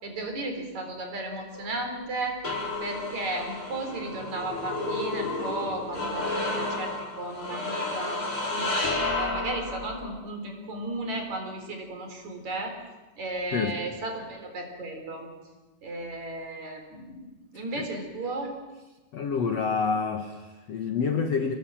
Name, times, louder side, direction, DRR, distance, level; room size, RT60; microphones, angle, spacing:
voice 1, 0.0-2.4 2.8-8.7 9.1-12.8 13.2-15.3 15.8-18.5, right 2 dB, 40° right, 4 dB, 5.0 m, -35 dB
sound 1, 1.5-10.1, left 2 dB, 30° left, 5.3 m, -31 dB
voice 2, 19.1-21.5, left 5 dB, 70° left, 5 dB, 1.5 m, -28 dB
28.5 x 20.0 x 7.5 m, 1.2 s
omnidirectional pair, 5.2 m